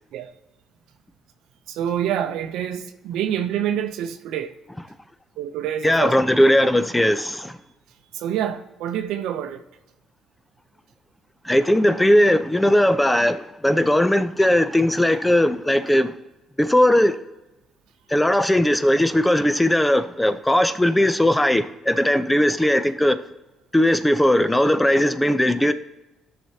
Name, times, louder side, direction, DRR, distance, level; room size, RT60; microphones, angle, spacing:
voice 1, 1.7-4.5 5.4-6.1 8.1-9.6, right 10 dB, 80° right, 0.7 m, -27 dB
voice 2, 5.8-7.5 11.5-16.1 16.6-17.1 18.1-23.2 23.7-25.7, left 1 dB, 10° left, 0.6 m, -18 dB
13.5 x 5.9 x 2.8 m
supercardioid pair, 65°, 0 cm